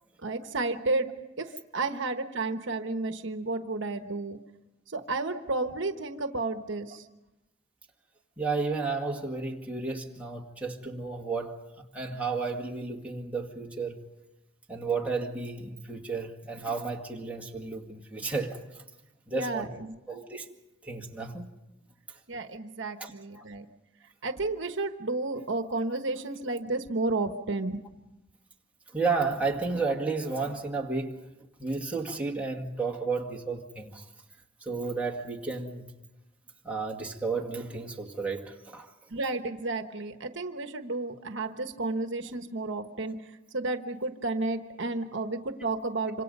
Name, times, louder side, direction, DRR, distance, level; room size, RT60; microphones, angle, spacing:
voice 1, 0.2-1.1 1.4-4.4 4.9-7.1 19.3-20.0 22.3-23.7 24.2-27.8 39.1-46.2, right 3 dB, 65° right, 1.2 m, -32 dB
voice 2, 8.4-11.6 11.9-14.0 14.7-18.8 19.3-19.7 20.1-20.5 20.8-21.5 22.1-22.2 23.0-23.5 28.9-31.2 31.6-34.1 34.6-35.9 36.6-38.9, right 4 dB, 5° right, 2.0 m, -32 dB
26.5 x 25.5 x 5.4 m
head